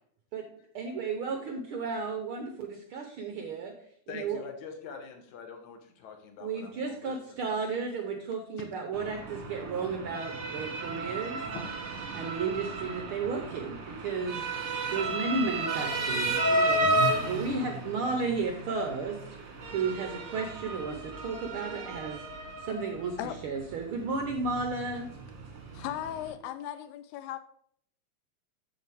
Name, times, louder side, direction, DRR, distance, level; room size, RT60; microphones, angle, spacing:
voice 1, 0.7-3.7 4.1-4.4 6.4-11.4 12.1-19.2 19.7-22.2 22.6-23.2 23.4-25.1, right 4 dB, 80° right, 4 dB, 1.1 m, -33 dB
voice 2, 4.1-7.6 11.5-11.6, left 6 dB, 75° left, 4 dB, 2.6 m, -44 dB
Motor vehicle (road) / Siren, 8.9-26.3, right 2 dB, 40° right, 1.2 m, -33 dB
voice 3, 25.7-27.4, left 11 dB, 90° left, 11 dB, 2.0 m, -37 dB
7.8 x 7.8 x 3.4 m, 0.63 s
omnidirectional pair, 3.4 m